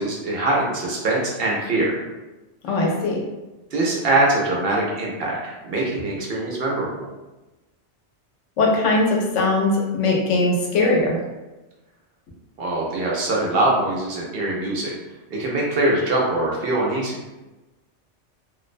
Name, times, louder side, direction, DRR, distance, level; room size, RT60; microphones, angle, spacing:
voice 1, 0.0-2.0 2.7-2.8 3.7-7.1 12.6-14.9 15.3-17.2, right 2 dB, 65° right, -3 dB, 0.7 m, -23 dB
voice 2, 2.6-3.2 8.6-11.2, left 2 dB, 90° left, -1 dB, 0.9 m, -20 dB
2.4 x 2.0 x 2.5 m, 1.1 s
omnidirectional pair, 1.2 m